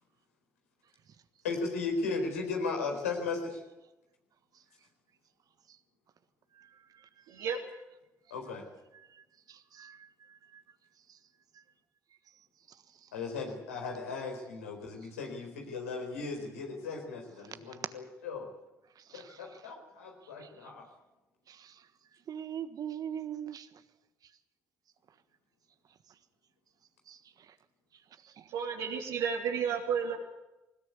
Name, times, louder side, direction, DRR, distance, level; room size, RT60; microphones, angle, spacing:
voice 1, 1.4-3.6 8.3-8.6 13.1-18.5 19.1-20.8, left 4 dB, 90° left, 2 dB, 4.2 m, -36 dB
voice 2, 7.3-7.6 28.5-30.2, right 7 dB, 75° right, -2 dB, 2.9 m, -32 dB
voice 3, 9.5-10.1 19.1-19.4 20.4-20.5 21.5-21.7 22.3-23.7 27.1-27.2, right 9 dB, 55° right, 12 dB, 1.4 m, -41 dB
21.0 x 19.5 x 8.3 m, 0.99 s
hypercardioid pair, 45°, 7 cm